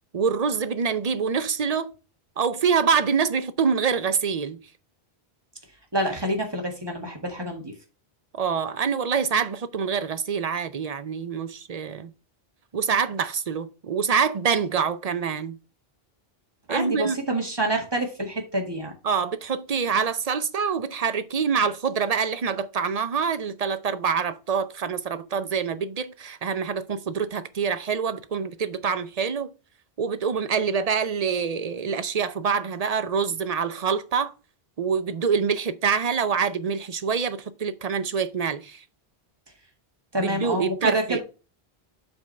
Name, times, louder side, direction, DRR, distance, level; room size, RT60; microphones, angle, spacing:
voice 1, 0.1-1.9 2.4-4.6 8.3-12.1 12.7-15.6 16.7-17.2 19.0-29.5 30.0-34.3 34.8-38.8 40.2-41.2, right 6 dB, 45° right, 0.6 m, -25 dB
voice 2, 5.9-7.7 16.7-18.9 40.1-41.2, right 1 dB, 25° right, 1.7 m, -27 dB
7.9 x 3.6 x 5.3 m
omnidirectional pair, 1.0 m